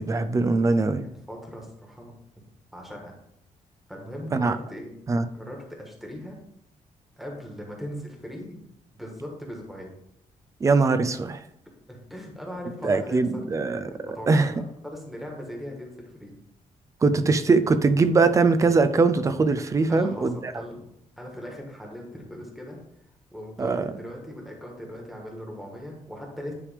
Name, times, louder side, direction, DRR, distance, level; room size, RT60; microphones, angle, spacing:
voice 1, 0.0-1.1 4.3-4.6 5.1-5.3 10.6-11.4 12.8-13.9 14.3-14.5 17.0-20.5 23.6-23.9, right 4 dB, 25° right, 11 dB, 0.4 m, -21 dB
voice 2, 1.3-2.4 2.7-3.1 3.9-4.9 5.3-6.4 7.2-8.6 8.9-9.9 11.9-13.4 13.9-16.4 19.9-20.9 21.2-22.8 23.3-26.5, equal, ahead, 0 dB, 1.5 m, -39 dB
10.0 x 3.4 x 5.0 m, 0.78 s
wide cardioid pair, 170°, 13 cm